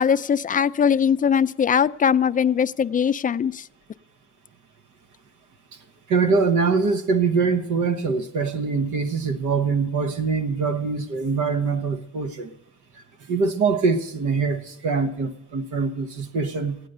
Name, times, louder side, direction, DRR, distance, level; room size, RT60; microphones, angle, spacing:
voice 1, 0.0-3.6, left 7 dB, 30° left, 13 dB, 0.4 m, -20 dB
voice 2, 6.1-12.5 13.3-16.8, right 4 dB, 80° right, 9 dB, 1.3 m, -23 dB
16.0 x 9.4 x 6.7 m, 0.88 s
cardioid pair, 90°, 30 cm